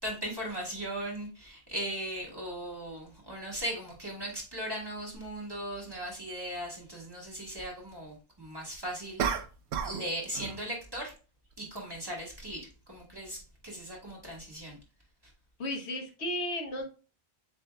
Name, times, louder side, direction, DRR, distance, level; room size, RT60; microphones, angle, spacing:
voice 1, 0.0-9.3 9.8-11.1 11.6-14.8 15.2-15.3, right 1 dB, 20° right, -2 dB, 1.6 m, -38 dB
sound 1, 5.1-5.2 9.2-10.1 10.3-10.7, right 7 dB, 80° right, 0.9 m, -32 dB
voice 2, 15.6-16.8, left 1 dB, 80° left, 3 dB, 1.2 m, -34 dB
7.5 x 2.7 x 2.2 m, 0.34 s
omnidirectional pair, 1.1 m